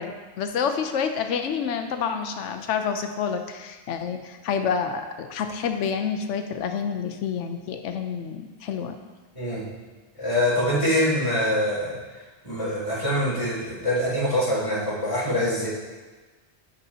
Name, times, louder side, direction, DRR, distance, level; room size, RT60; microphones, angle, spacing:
voice 1, 0.0-9.0, left 6 dB, 85° left, 7 dB, 1.0 m, -28 dB
voice 2, 9.3-9.7 10.1-11.9 12.4-15.7, left 1 dB, 25° left, -11 dB, 2.6 m, -24 dB
10.0 x 5.5 x 2.7 m, 1.3 s
omnidirectional pair, 1.2 m